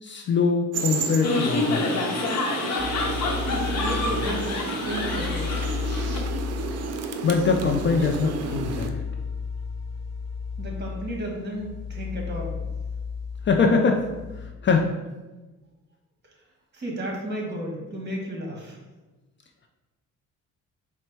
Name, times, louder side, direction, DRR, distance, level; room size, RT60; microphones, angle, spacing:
voice 1, 0.0-2.0 7.2-9.0 13.4-14.1 14.4-14.9, left 4 dB, 40° left, 3 dB, 0.4 m, -23 dB
sound 1, 0.7-8.9, right 5 dB, 55° right, 0.5 m, -32 dB
sound 2, 1.2-6.2, left 3 dB, 60° left, 0.9 m, -28 dB
sound 3, 2.8-14.5, left 5 dB, 10° left, 1.2 m, -33 dB
voice 2, 3.3-5.7 10.6-12.6 16.7-18.8, equal, 35° right, -1 dB, 1.3 m, -33 dB
4.1 x 2.1 x 4.5 m, 1.2 s
cardioid pair, 90°, 30 cm